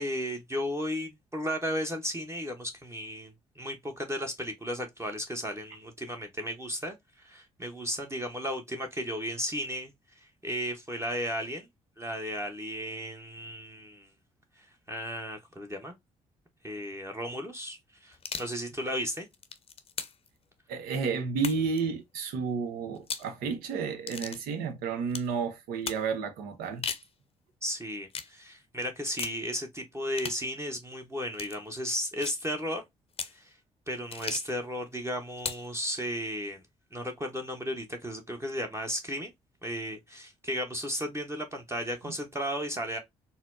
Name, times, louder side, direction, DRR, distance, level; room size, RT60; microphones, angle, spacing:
voice 1, 0.0-9.9 10.4-11.7 12.0-14.1 14.6-15.9 16.6-19.3 27.6-32.8 33.3-33.5 33.9-36.6 36.9-39.3 39.6-43.0, equal, 15° right, 0.8 m, -34 dB
sound 1, 18.1-18.6 19.2-20.3 21.4-21.8 23.0-23.3 24.1-24.4 25.1-25.3 25.9-26.1 26.6-27.1 28.1-28.3 29.2-29.4 30.1-30.4 31.3-31.6 32.2-32.4 33.1-33.4 34.1-34.5 35.4-35.7, left 6 dB, 40° left, 0.6 m, -37 dB
voice 2, 20.7-26.9, right 5 dB, 80° right, 0.7 m, -31 dB
4.0 x 2.0 x 2.4 m
hypercardioid pair, 50°, 15 cm